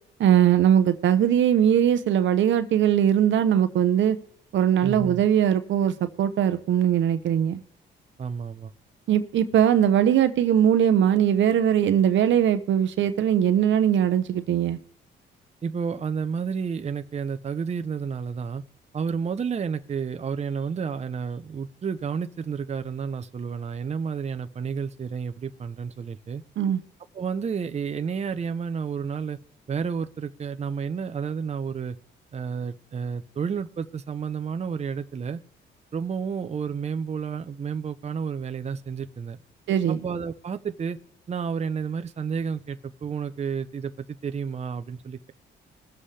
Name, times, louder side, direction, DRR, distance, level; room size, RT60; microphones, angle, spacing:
voice 1, 0.2-4.2 4.5-7.6 9.1-14.8 26.6-26.8 39.7-40.0, right 9 dB, 70° right, 10 dB, 0.8 m, -20 dB
voice 2, 4.8-5.2 8.2-8.7 15.6-18.6 18.9-26.4 27.1-29.4 29.7-32.0 32.3-35.4 35.9-39.4 39.9-41.0 41.3-43.9 44.2-45.3, right 6 dB, 35° right, 8 dB, 0.7 m, -31 dB
21.0 x 7.5 x 3.4 m, 0.69 s
cardioid pair, 90°, 20 cm